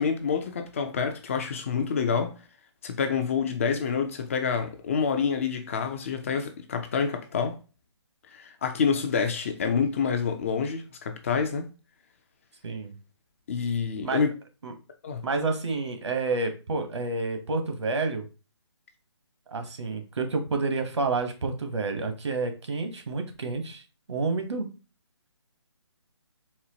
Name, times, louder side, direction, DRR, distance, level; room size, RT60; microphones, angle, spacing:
voice 1, 0.0-2.4 2.8-7.6 8.3-11.7 13.5-14.3 15.0-15.2, left 6 dB, 30° left, 0.4 m, -27 dB
voice 2, 12.6-12.9 14.0-14.2 14.6-14.7 15.2-18.3 19.5-23.8 24.1-24.7, right 3 dB, 70° right, 1.0 m, -29 dB
4.2 x 2.1 x 2.7 m
figure-of-eight pair, 150°, 15 cm